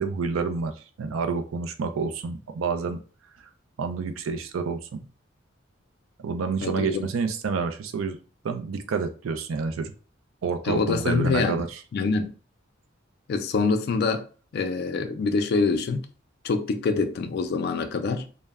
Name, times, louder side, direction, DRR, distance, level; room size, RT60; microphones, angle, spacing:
voice 1, 0.0-3.0 3.8-5.0 6.2-8.2 8.4-9.9 10.4-11.7, right 5 dB, 85° right, 0.4 m, -28 dB
voice 2, 6.6-7.1 10.6-11.7 11.9-12.3 13.3-14.3 14.5-16.1 16.4-18.3, left 4 dB, 50° left, 0.3 m, -25 dB
2.1 x 2.0 x 3.4 m
head